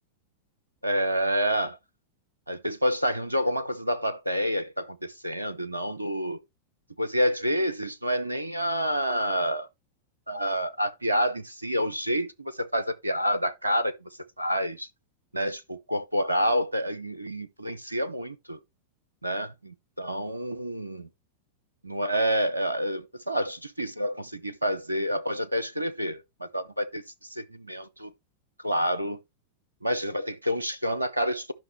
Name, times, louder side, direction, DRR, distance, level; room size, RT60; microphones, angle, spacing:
voice 1, 0.8-1.8 2.5-6.4 7.0-9.7 10.3-14.1 14.4-14.9 15.3-15.6 15.9-18.6 19.2-21.1 21.8-28.1 28.6-29.2 29.8-31.5, equal, 85° right, 0.7 m, -28 dB
10.5 x 5.8 x 3.2 m
figure-of-eight pair, 90°, 0 cm